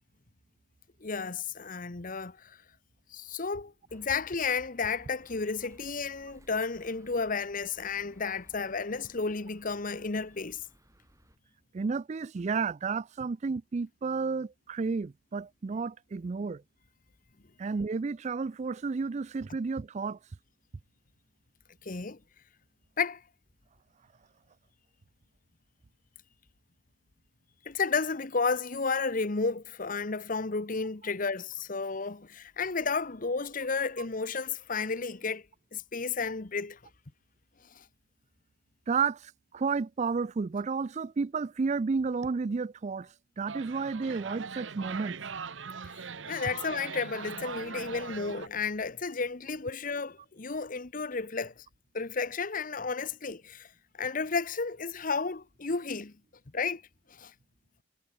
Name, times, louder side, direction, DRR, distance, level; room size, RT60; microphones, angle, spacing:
voice 1, 1.0-2.6 3.1-10.6 21.8-22.2 23.0-23.2 27.6-35.4 35.7-36.8 37.7-37.8 45.9-51.6 51.9-53.7 54.0-56.1 56.5-56.8 57.1-57.3, left 4 dB, 45° left, 1.1 m, -32 dB
sound 1, 3.9-11.4, right 1 dB, 15° right, 6.7 m, -60 dB
voice 2, 11.7-16.6 17.6-20.2 38.9-45.2, right 4 dB, 40° right, 0.4 m, -32 dB
sound 2, 43.5-48.5, right 5 dB, 85° right, 1.0 m, -40 dB
head